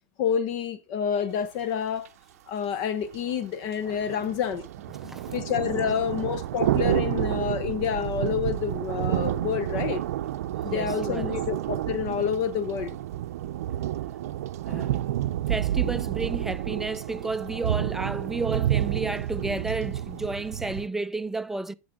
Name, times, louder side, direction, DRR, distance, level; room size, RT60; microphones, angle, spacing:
voice 1, 0.2-2.1 2.5-4.6 5.3-10.0 10.6-12.9, left 8 dB, 55° left, 1.0 m, -28 dB
sound 1, 2.1-2.2 3.1-20.9, right 12 dB, 80° right, 0.5 m, -30 dB
voice 2, 10.7-11.4 14.7-15.0 15.5-21.7, right 3 dB, 5° right, 0.4 m, -32 dB
9.4 x 6.4 x 3.7 m
supercardioid pair, 120°, 8 cm